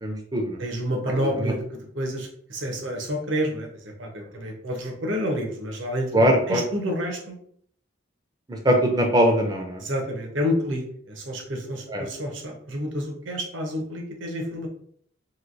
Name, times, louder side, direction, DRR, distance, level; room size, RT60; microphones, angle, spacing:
voice 1, 0.0-0.6 1.4-1.5 6.1-6.6 8.5-9.8 11.9-12.0, equal, 20° right, 3 dB, 0.5 m, -21 dB
voice 2, 0.6-7.3 9.8-14.7, equal, 75° right, 1 dB, 0.8 m, -29 dB
3.1 x 2.7 x 2.6 m, 0.64 s
head